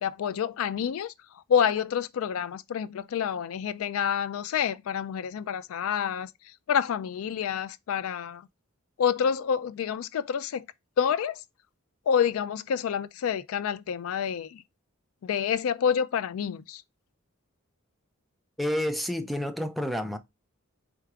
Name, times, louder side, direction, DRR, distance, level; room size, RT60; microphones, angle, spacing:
voice 1, 0.0-8.4 9.0-10.7 11.0-11.4 12.1-14.6 15.2-16.8, left 8 dB, 75° left, 0.3 m, -28 dB
voice 2, 18.6-20.2, left 1 dB, ahead, 0.4 m, -29 dB
4.5 x 3.7 x 2.3 m
head